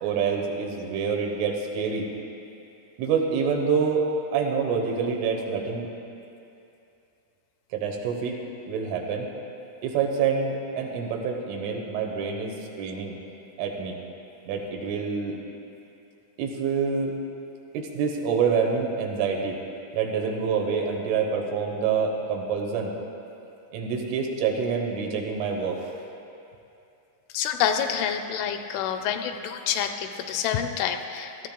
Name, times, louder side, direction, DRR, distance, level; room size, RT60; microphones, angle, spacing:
voice 1, 0.0-2.1 3.0-4.1 4.3-5.9 7.7-8.4 8.7-9.3 9.8-13.2 13.6-14.0 14.5-15.4 16.4-17.1 17.7-19.6 19.9-22.9 23.7-25.9, right 6 dB, 90° right, 1 dB, 3.6 m, -27 dB
voice 2, 27.3-31.5, left 8 dB, 85° left, 6 dB, 2.9 m, -27 dB
16.5 x 13.5 x 2.2 m, 2.7 s
omnidirectional pair, 5.5 m